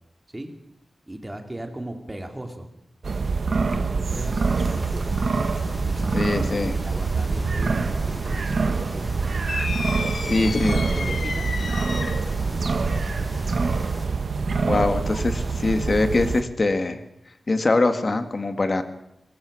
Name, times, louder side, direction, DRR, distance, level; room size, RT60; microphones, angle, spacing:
voice 1, 1.1-2.7 3.5-9.5 10.2-12.1 12.5-13.1, right 1 dB, 15° right, 5 dB, 2.5 m, -37 dB
sound 1, 3.0-16.4, right 4 dB, 60° right, 1.4 m, -25 dB
sound 2, 4.0-14.0, equal, 20° left, 7.0 m, -41 dB
voice 2, 6.1-6.8 10.3-10.8 14.6-17.0 17.5-18.8, left 2 dB, 40° left, 8 dB, 1.9 m, -23 dB
sound 3, 9.5-12.4, left 4 dB, 75° left, 2.3 m, -32 dB
22.5 x 21.0 x 6.3 m, 0.82 s
wide cardioid pair, 135°, 0 cm